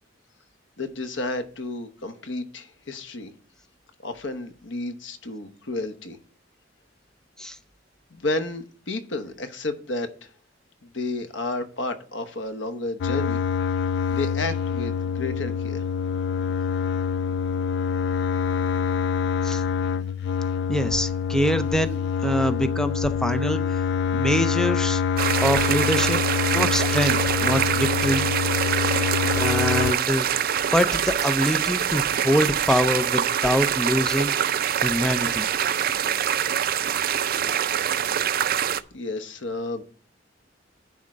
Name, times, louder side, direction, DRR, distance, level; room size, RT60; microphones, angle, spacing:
voice 1, 0.8-3.3 4.0-6.2 8.1-10.3 10.8-13.4 14.1-15.9 38.9-39.8, left 2 dB, 85° left, 1.0 m, -31 dB
sound 1, 13.0-29.9, left 7 dB, 65° left, 0.3 m, -26 dB
voice 2, 20.7-23.8 24.1-25.0 25.4-26.2 26.5-28.3 28.8-29.0 29.4-30.3 30.7-34.3 34.8-35.5, equal, 5° left, 0.5 m, -24 dB
sound 2, 25.2-38.8, right 9 dB, 55° right, 0.4 m, -24 dB
10.5 x 3.6 x 6.4 m
head